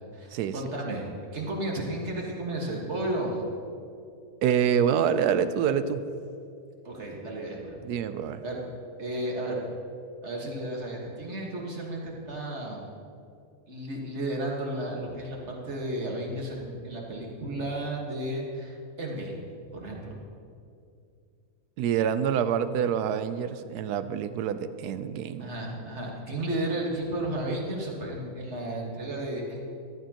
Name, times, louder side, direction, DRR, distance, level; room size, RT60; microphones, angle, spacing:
voice 1, 0.1-3.4 6.8-7.8 8.4-8.6 9.0-9.6 10.2-12.9 13.7-19.4 19.7-20.0 25.4-29.7, right 1 dB, 45° right, -1 dB, 1.9 m, -33 dB
voice 2, 4.4-6.0 7.8-8.4 21.8-25.5, right 8 dB, 85° right, 12 dB, 1.1 m, -26 dB
14.0 x 12.0 x 2.9 m, 2.5 s
omnidirectional pair, 1.6 m